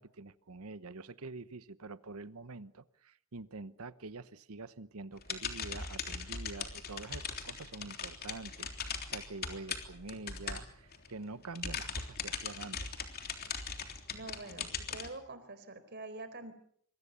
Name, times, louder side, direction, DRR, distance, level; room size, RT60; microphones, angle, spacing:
voice 1, 0.0-13.2, right 3 dB, 75° right, 14 dB, 1.0 m, -46 dB
sound 1, 5.2-11.1 11.4-15.1, left 6 dB, 45° left, 3.4 m, -40 dB
voice 2, 14.1-16.5, right 2 dB, 50° right, 11 dB, 4.3 m, -46 dB
26.5 x 22.5 x 6.9 m, 0.62 s
head